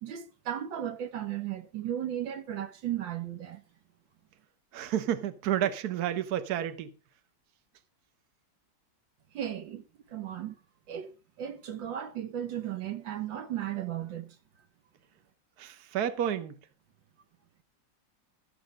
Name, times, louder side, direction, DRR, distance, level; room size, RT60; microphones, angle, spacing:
voice 1, 0.0-3.6 9.3-10.6 10.9-14.4, right 10 dB, 80° right, 1.8 m, -35 dB
voice 2, 4.7-6.9 15.6-16.6, right 10 dB, 60° right, 1.5 m, -30 dB
13.0 x 9.1 x 5.2 m
omnidirectional pair, 2.0 m